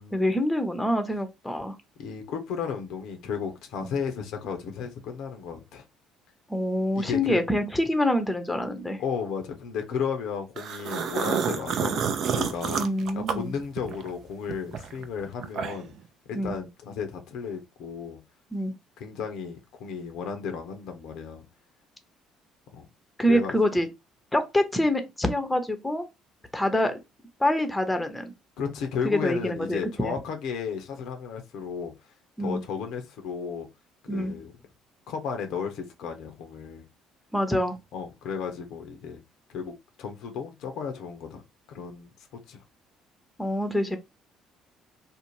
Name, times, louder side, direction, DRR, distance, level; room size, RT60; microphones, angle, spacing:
voice 1, 0.1-1.8 3.8-3.9 6.5-9.0 12.8-13.5 16.3-16.5 18.5-18.7 23.2-23.9 24.3-26.1 26.5-26.9 27.4-28.3 29.0-30.1 32.4-32.6 34.1-34.3 37.3-37.8 43.4-44.0, left 1 dB, 10° left, 0.6 m, -26 dB
voice 2, 2.0-5.8 6.9-7.4 9.0-12.8 13.1-15.9 16.3-18.2 19.0-21.4 22.7-22.9 23.3-23.5 28.6-31.9 32.4-33.7 34.0-34.6 35.1-36.8 37.9-39.2 39.5-41.4 41.7-42.1 42.5-42.6, left 6 dB, 65° left, 0.5 m, -34 dB
sound 1, 10.6-14.1 14.5-16.0, right 7 dB, 55° right, 0.4 m, -29 dB
2.5 x 2.1 x 3.0 m
hypercardioid pair, 55°, 0 cm